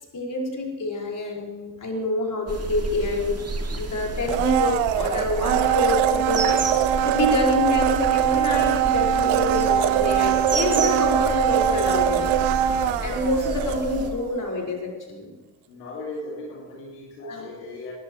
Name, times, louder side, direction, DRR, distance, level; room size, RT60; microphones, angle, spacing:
voice 1, 0.1-3.4 3.8-12.3 13.0-15.3 17.2-17.5, left 2 dB, 40° left, -1 dB, 5.4 m, -27 dB
sound 1, 2.5-14.1, right 3 dB, 30° right, 2.3 m, -32 dB
Domestic sounds home sounds, 4.3-14.2 14.5-14.6, right 10 dB, 65° right, 1.1 m, -22 dB
voice 2, 15.7-17.9, left 2 dB, 75° left, -3 dB, 2.6 m, -37 dB
20.5 x 19.0 x 3.3 m, 1.2 s
figure-of-eight pair, 40°, 50 cm